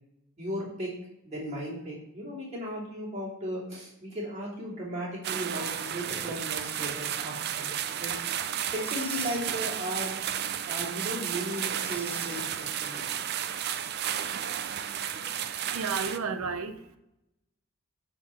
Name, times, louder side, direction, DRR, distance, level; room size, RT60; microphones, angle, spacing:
voice 1, 0.4-0.9 1.2-8.1 8.7-10.2 10.6-13.0, equal, 30° right, -6 dB, 3.0 m, -36 dB
sound 1, 5.2-16.2, right 9 dB, 45° right, 0.4 m, -33 dB
sound 2, 5.8-13.4, left 2 dB, 5° left, 0.6 m, -50 dB
voice 2, 15.6-17.0, right 5 dB, 80° right, 9 dB, 0.7 m, -33 dB
10.5 x 4.4 x 4.4 m, 0.86 s
head